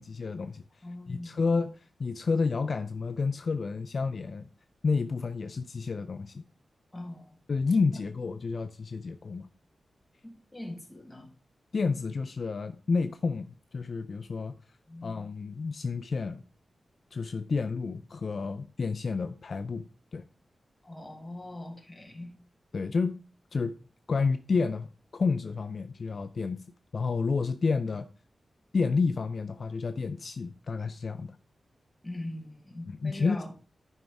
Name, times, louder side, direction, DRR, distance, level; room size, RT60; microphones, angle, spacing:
voice 1, 0.0-0.6 1.1-4.5 4.8-6.4 7.5-9.5 11.7-14.5 15.0-16.4 17.1-19.8 20.1-20.2 22.7-23.2 23.5-23.7 24.1-26.6 26.9-28.1 28.7-31.4 32.9-33.4, left 4 dB, 50° left, 0.4 m, -30 dB
voice 2, 0.8-1.3 6.9-7.4 7.9-8.0 10.2-11.3 14.9-15.1 20.8-22.3 32.0-33.5, left 1 dB, 10° left, 1.6 m, -41 dB
12.0 x 5.3 x 3.5 m
wide cardioid pair, 150°, 0 cm